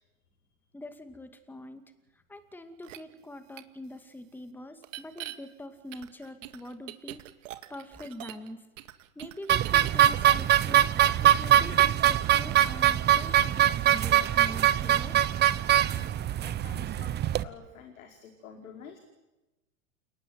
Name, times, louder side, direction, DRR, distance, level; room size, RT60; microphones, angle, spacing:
voice 1, 0.7-7.2 7.7-8.6 9.2-10.9 11.2-15.2, left 1 dB, 5° left, 9 dB, 2.2 m, -44 dB
sound 1, 2.8-3.0 3.6-3.7 4.8-5.3 5.9-8.5 8.8-10.8 11.0-11.3, right 15 dB, 60° right, 2.3 m, -42 dB
sound 2, 9.5-17.4, right 12 dB, 25° right, 1.0 m, -23 dB
voice 2, 16.4-17.1 17.4-19.0, left 7 dB, 70° left, 4 dB, 5.0 m, -48 dB
29.0 x 19.0 x 9.5 m, 1.0 s
hypercardioid pair, 115°, 42 cm